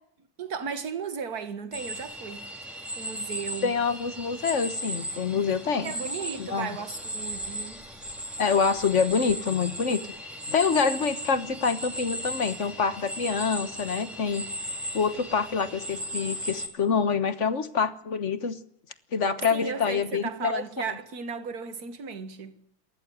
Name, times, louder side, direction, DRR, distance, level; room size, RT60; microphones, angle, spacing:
voice 1, 0.4-2.5 3.0-3.7 5.8-7.9 19.5-22.6, right 6 dB, 50° right, 2.2 m, -35 dB
sound 1, 1.7-16.7, equal, ahead, 3.8 m, -36 dB
voice 2, 3.6-5.9 6.4-6.7 8.4-10.1 10.5-14.5 14.9-18.6 19.1-20.6, left 5 dB, 40° left, 1.4 m, -26 dB
27.0 x 14.0 x 9.6 m
omnidirectional pair, 2.2 m